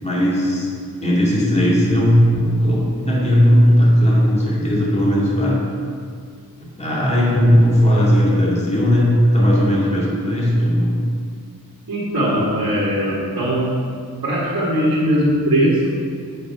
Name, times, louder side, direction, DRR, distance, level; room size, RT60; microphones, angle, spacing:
voice 1, 0.0-0.7 1.0-5.6 6.8-10.9, equal, 15° left, -5 dB, 2.4 m, -16 dB
voice 2, 11.9-13.8 14.2-15.9, equal, 65° right, -9 dB, 2.2 m, -19 dB
8.5 x 5.1 x 5.6 m, 2.2 s
wide cardioid pair, 70°, 38 cm